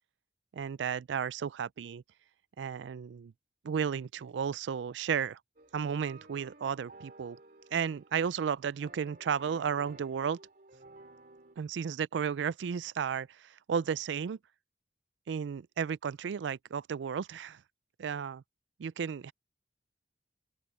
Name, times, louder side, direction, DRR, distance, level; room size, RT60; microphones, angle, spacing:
voice 1, 0.5-2.0 2.6-3.3 3.6-5.4 5.7-7.4 7.7-10.4 11.6-14.4 15.3-17.6 18.0-18.4 18.8-19.3, right 7 dB, 85° right, 0.4 m, -33 dB
sound 1, 5.6-11.6, right 2 dB, 55° right, 3.2 m, -55 dB
open air
head